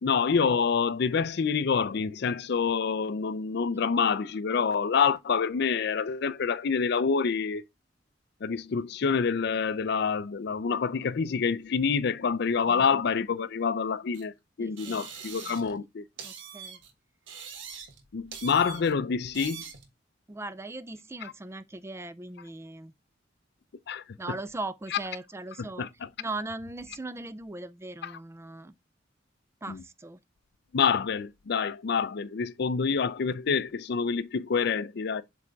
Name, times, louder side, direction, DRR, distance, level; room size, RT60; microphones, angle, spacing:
voice 1, 0.0-7.6 8.4-14.3 14.6-16.0 18.1-19.6 23.9-24.0 25.8-25.9 29.7-29.8 30.7-35.2, left 5 dB, 60° left, 0.5 m, -27 dB
voice 2, 12.7-13.0 14.6-15.0 15.4-15.8 16.2-16.8 20.3-22.9 24.2-25.9 26.2-28.7 29.6-30.2, right 2 dB, 15° right, 0.4 m, -39 dB
sound 1, 14.1-14.2 14.8-15.8 16.2-16.9 17.3-18.0 18.3-18.9 19.3-19.9, right 7 dB, 90° right, 1.4 m, -43 dB
7.6 x 3.4 x 3.9 m
head